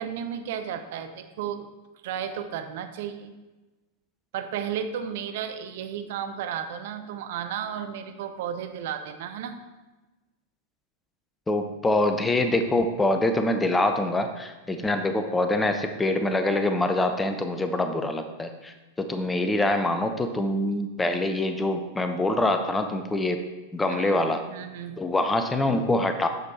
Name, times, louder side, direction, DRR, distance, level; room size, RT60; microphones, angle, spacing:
voice 1, 0.0-1.7 2.0-3.3 4.3-9.6 23.9-25.0, right 8 dB, 55° right, 8 dB, 0.7 m, -33 dB
voice 2, 11.5-23.4 23.7-24.4 25.0-26.3, left 2 dB, 10° left, 7 dB, 0.7 m, -25 dB
9.3 x 6.4 x 4.2 m, 1.1 s
figure-of-eight pair, 90°, 0 cm